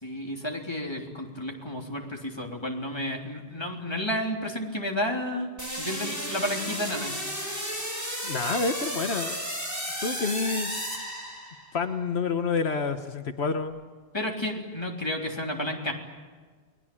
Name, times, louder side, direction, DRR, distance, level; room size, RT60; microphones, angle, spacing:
voice 1, 0.0-7.2 14.1-15.9, left 1 dB, 25° left, 0 dB, 3.6 m, -31 dB
sound 1, 5.6-11.8, equal, 15° right, 5.8 m, -33 dB
voice 2, 8.2-9.5 10.0-10.7 11.7-13.8, left 4 dB, 75° left, 7 dB, 1.5 m, -28 dB
29.5 x 20.5 x 8.7 m, 1.5 s
omnidirectional pair, 1.1 m